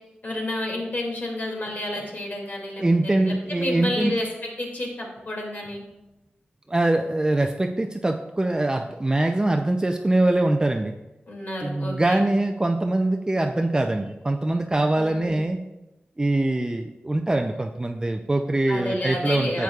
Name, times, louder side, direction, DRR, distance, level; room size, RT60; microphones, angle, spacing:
voice 1, 0.2-5.8 11.3-12.3 15.0-15.5 18.7-19.6, left 1 dB, 50° left, -2 dB, 2.4 m, -30 dB
voice 2, 2.8-4.1 6.7-11.0 11.6-15.6 16.2-19.6, right 2 dB, 20° right, 4 dB, 0.4 m, -23 dB
10.5 x 8.0 x 2.4 m, 0.96 s
wide cardioid pair, 90°, 4 cm